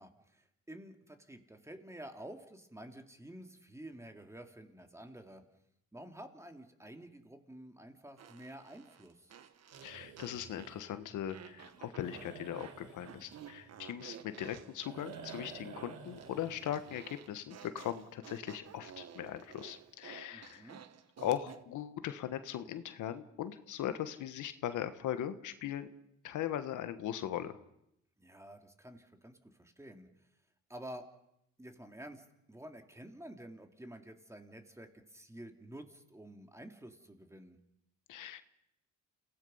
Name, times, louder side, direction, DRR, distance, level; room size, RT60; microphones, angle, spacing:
voice 1, 0.0-5.4 5.9-9.3 20.3-20.8 28.2-30.1 30.7-31.0 31.6-37.6, right 1 dB, 10° right, 5 dB, 2.7 m, -50 dB
Fart, 8.2-10.8 11.3-21.6, right 8 dB, 60° right, 1.4 m, -53 dB
sound 1, 9.7-17.9, right 5 dB, 85° right, 3.9 m, -53 dB
voice 2, 9.8-20.7 21.2-25.9 26.2-27.6 38.1-38.4, left 11 dB, 80° left, 11 dB, 1.4 m, -39 dB
29.0 x 17.5 x 5.6 m, 0.79 s
cardioid pair, 90°, 30 cm